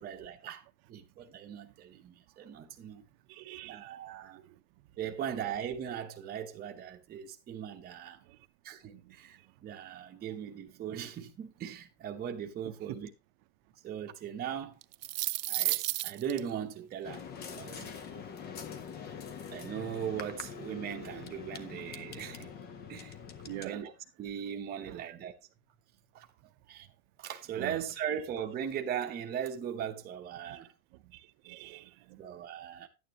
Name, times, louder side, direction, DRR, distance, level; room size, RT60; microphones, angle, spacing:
voice 1, 0.0-3.0 3.6-4.4 5.0-8.2 8.6-13.1 13.8-14.8 15.5-18.0 19.5-22.5 22.9-23.2 23.6-23.9 24.2-25.4 26.1-26.3 26.7-26.9 27.2-30.7 32.2-32.9, right 9 dB, 20° right, 1.0 m, -39 dB
voice 2, 3.3-3.9 4.4-4.5 8.9-9.0 12.9-13.0 23.4-23.8 24.8-25.1 27.6-27.8 30.4-30.6 31.1-32.2, right 16 dB, 45° right, 0.9 m, -45 dB
sound 1, 14.8-16.4, right 16 dB, 90° right, 0.6 m, -31 dB
sound 2, 17.0-23.7, left 7 dB, 20° left, 0.7 m, -44 dB
11.0 x 9.2 x 3.0 m
hypercardioid pair, 135°, 45 cm